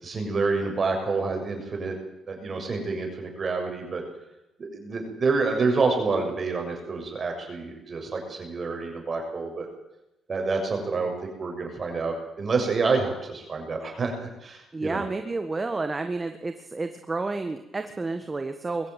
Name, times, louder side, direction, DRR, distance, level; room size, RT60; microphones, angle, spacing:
voice 1, 0.0-2.0 2.3-4.0 4.6-9.7 10.3-15.0, right 4 dB, 40° right, 3 dB, 6.9 m, -28 dB
voice 2, 14.7-18.9, right 3 dB, 25° right, 8 dB, 1.5 m, -30 dB
21.5 x 15.0 x 9.2 m, 0.91 s
cardioid pair, 90°, 0 cm